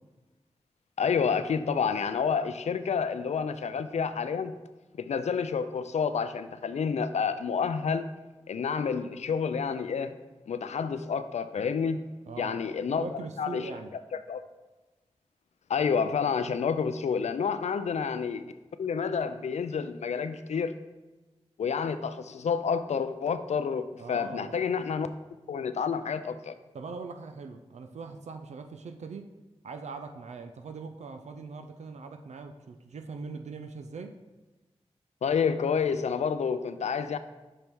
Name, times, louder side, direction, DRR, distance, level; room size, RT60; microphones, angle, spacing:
voice 1, 1.0-4.6 5.0-8.1 8.5-10.1 10.5-12.0 12.4-13.1 13.4-13.7 14.3-14.4 15.7-18.4 18.8-20.7 21.6-25.1 25.5-26.5 35.2-37.2, left 6 dB, 80° left, 11 dB, 0.4 m, -29 dB
voice 2, 12.3-14.0 24.0-24.6 26.7-29.4 29.6-34.2, right 4 dB, 85° right, 6 dB, 0.4 m, -41 dB
5.6 x 5.3 x 4.6 m, 1.1 s
cardioid pair, 50°, 11 cm